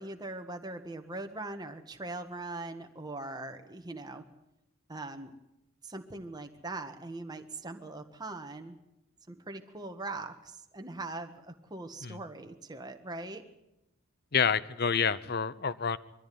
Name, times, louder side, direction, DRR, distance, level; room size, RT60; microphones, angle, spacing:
voice 1, 0.0-4.2 4.9-5.3 5.8-8.7 9.3-13.4, right 2 dB, 20° right, 6 dB, 1.5 m, -41 dB
voice 2, 14.3-16.0, left 6 dB, 45° left, 17 dB, 0.7 m, -28 dB
22.5 x 14.5 x 9.4 m, 0.91 s
head